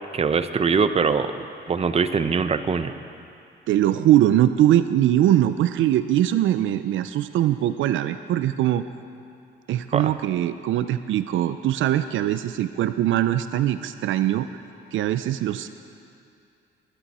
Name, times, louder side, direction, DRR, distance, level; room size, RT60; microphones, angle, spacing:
voice 1, 0.1-2.9 9.9-10.1, right 5 dB, 30° right, 10 dB, 0.7 m, -23 dB
voice 2, 3.7-8.9 9.7-14.5 14.9-15.7, right 12 dB, 75° right, 11 dB, 0.5 m, -21 dB
21.5 x 11.5 x 4.2 m, 2.5 s
cardioid pair, 90°, 20 cm